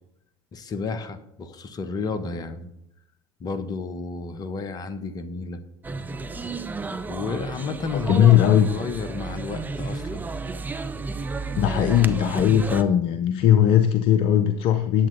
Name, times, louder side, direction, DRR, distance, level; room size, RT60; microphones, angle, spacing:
voice 1, 0.5-2.7 3.4-5.6 7.1-10.2, left 4 dB, 35° left, 10 dB, 1.1 m, -32 dB
sound 1, 5.8-12.8, right 3 dB, 15° right, 0.7 m, -32 dB
voice 2, 8.1-8.7 11.5-15.1, left 10 dB, 50° left, 10 dB, 0.6 m, -19 dB
10.5 x 7.5 x 4.0 m, 0.79 s
hypercardioid pair, 75°, 12 cm